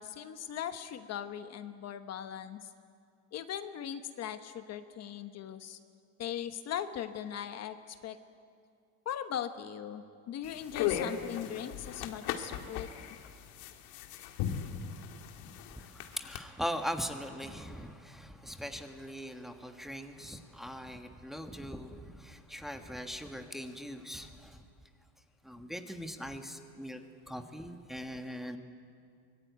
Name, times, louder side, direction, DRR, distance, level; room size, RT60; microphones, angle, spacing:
voice 1, 0.0-2.7 3.3-5.8 6.2-8.2 9.0-12.9, left 9 dB, 45° left, 9 dB, 1.1 m, -39 dB
sound 1, 10.4-16.4, left 9 dB, 75° left, 2.1 m, -37 dB
voice 2, 15.8-24.6 25.4-27.0 27.3-28.6, equal, ahead, 5 dB, 1.4 m, -40 dB
24.0 x 20.0 x 9.3 m, 2.3 s
cardioid pair, 135°, 36 cm